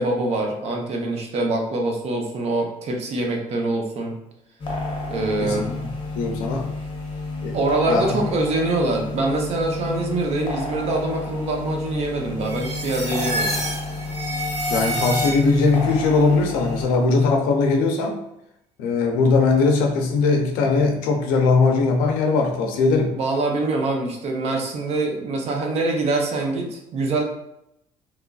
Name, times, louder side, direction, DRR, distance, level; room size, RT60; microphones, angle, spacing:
voice 1, 0.0-4.1 5.1-5.7 7.5-13.6 23.1-27.2, right 2 dB, 50° right, 2 dB, 0.6 m, -24 dB
sound 1, 4.6-16.9, left 2 dB, 35° left, 0.7 m, -30 dB
voice 2, 5.4-5.8 6.2-6.7 7.4-7.6 7.9-8.1 14.7-18.2 18.8-23.1, left 4 dB, 85° left, 3 dB, 0.5 m, -20 dB
sound 2, 12.4-15.8, equal, 25° right, 1.0 m, -28 dB
3.0 x 2.4 x 2.3 m, 0.82 s
cardioid pair, 125°, 14 cm